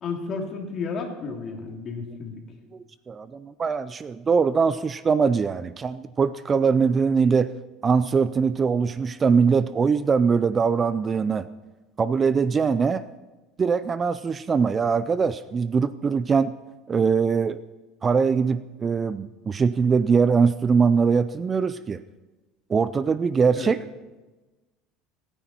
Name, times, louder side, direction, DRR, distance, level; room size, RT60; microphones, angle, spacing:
voice 1, 0.0-2.4 23.5-23.7, left 4 dB, 40° left, 1 dB, 3.0 m, -32 dB
voice 2, 3.1-7.5 7.8-11.5 12.0-13.1 13.6-16.5 16.9-17.6 18.0-22.0 22.7-23.8, right 5 dB, 25° right, 15 dB, 0.4 m, -22 dB
25.5 x 10.0 x 4.4 m, 1.2 s
supercardioid pair, 130°, 0 cm